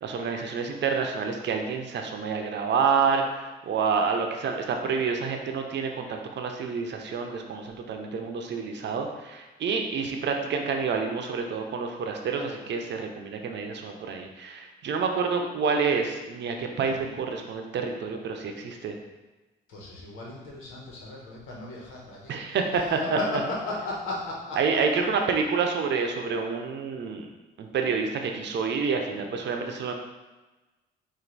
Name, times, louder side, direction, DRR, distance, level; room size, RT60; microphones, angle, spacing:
voice 1, 0.0-18.9 22.3-23.2 24.6-27.3 27.6-29.9, right 5 dB, 60° right, 3 dB, 0.7 m, -28 dB
voice 2, 16.8-17.1 19.7-22.3 22.7-24.6, left 2 dB, 90° left, -3 dB, 1.2 m, -36 dB
4.5 x 2.6 x 4.0 m, 1.1 s
cardioid pair, 90°, 20 cm